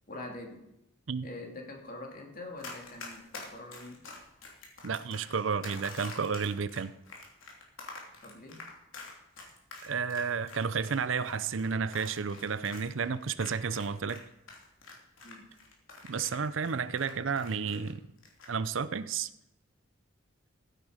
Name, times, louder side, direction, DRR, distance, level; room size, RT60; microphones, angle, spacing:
voice 1, 0.1-0.6 1.2-4.0 8.2-8.6 15.2-15.5, left 2 dB, 45° left, 1 dB, 2.7 m, -44 dB
Run, 2.6-14.2 14.5-17.9 18.2-18.5, left 3 dB, 80° left, 3.2 m, -46 dB
voice 2, 4.8-6.9 9.8-14.2 16.1-18.0 18.5-19.3, right 5 dB, 70° right, 15 dB, 0.6 m, -32 dB
15.0 x 9.1 x 5.1 m, 0.86 s
head